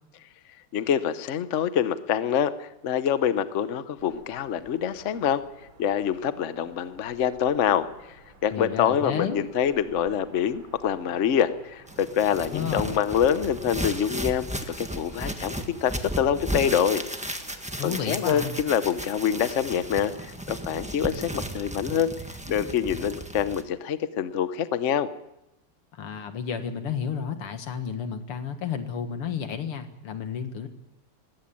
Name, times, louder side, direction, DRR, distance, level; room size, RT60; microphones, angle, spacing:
voice 1, 0.7-5.4 5.8-7.9 8.4-17.0 17.8-22.1 22.5-25.1, left 8 dB, 50° left, 12 dB, 0.9 m, -25 dB
sound 1, 4.0-20.4, right 2 dB, 60° right, 4.1 m, -52 dB
voice 2, 8.5-9.4 12.5-13.0 17.8-18.5 25.9-30.7, left 7 dB, 90° left, 8 dB, 2.6 m, -32 dB
sound 2, 11.9-23.6, right 1 dB, 5° right, 1.0 m, -35 dB
19.0 x 17.0 x 8.8 m, 0.92 s
omnidirectional pair, 2.4 m